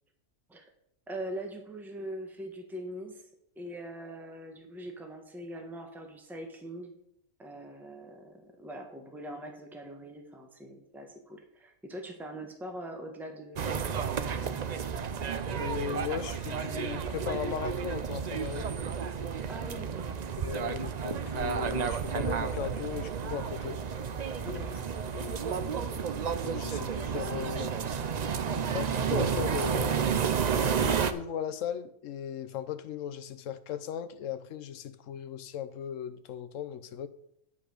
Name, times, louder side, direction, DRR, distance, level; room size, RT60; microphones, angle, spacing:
voice 1, 1.1-3.3 3.5-6.9 7.4-14.5 19.5-20.1 20.4-20.5 24.4-24.7, right 1 dB, ahead, 3 dB, 1.2 m, -42 dB
sound 1, 13.6-31.1, right 7 dB, 80° right, 0.3 m, -31 dB
voice 2, 15.5-18.7 20.3-23.8 24.4-24.6 25.1-27.7 28.7-37.1, left 9 dB, 65° left, 11 dB, 1.0 m, -37 dB
9.9 x 5.4 x 6.4 m, 0.75 s
omnidirectional pair, 1.5 m